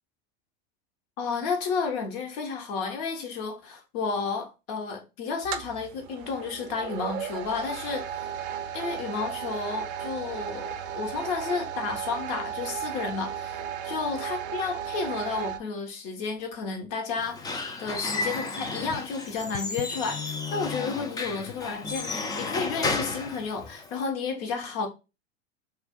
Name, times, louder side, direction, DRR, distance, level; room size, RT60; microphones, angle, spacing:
voice 1, 1.2-8.3 8.7-17.5 17.8-24.9, left 5 dB, 55° left, 1.1 m, -32 dB
sound 1, 5.4-15.6, right 9 dB, 50° right, 0.5 m, -35 dB
Squeak / Wood, 17.2-24.1, left 3 dB, 10° left, 0.4 m, -33 dB
2.6 x 2.4 x 3.6 m
hypercardioid pair, 100°, 34 cm